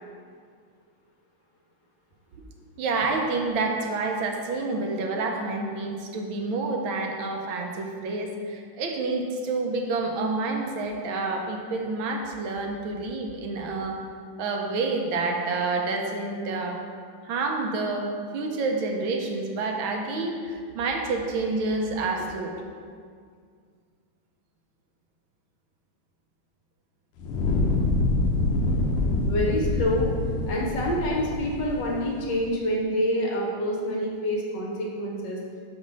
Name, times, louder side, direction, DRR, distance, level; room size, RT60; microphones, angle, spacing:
voice 1, 2.8-14.0 14.4-16.8 17.2-22.5, right 3 dB, 75° right, 2 dB, 1.5 m, -28 dB
Fire, 27.2-32.4, left 2 dB, 90° left, 1.6 m, -26 dB
voice 2, 29.3-30.1 30.5-35.4, equal, 60° left, -2 dB, 1.6 m, -27 dB
6.0 x 5.3 x 5.2 m, 2.1 s
omnidirectional pair, 2.3 m